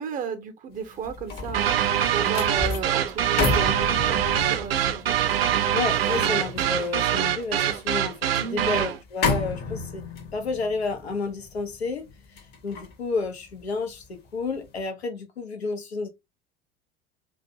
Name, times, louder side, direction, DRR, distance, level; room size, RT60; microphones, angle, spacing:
voice 1, 0.0-5.6 6.1-6.4 8.3-8.7, right 6 dB, 25° right, 0.6 m, -34 dB
sound 1, 0.8-14.1 14.5-14.8, left 4 dB, 30° left, 0.7 m, -33 dB
sound 2, 1.5-9.0, right 10 dB, 70° right, 0.5 m, -24 dB
voice 2, 5.7-10.0 10.3-12.1 12.3-16.1, left 4 dB, 85° left, 0.6 m, -31 dB
2.5 x 2.3 x 2.6 m
figure-of-eight pair, 75°, 31 cm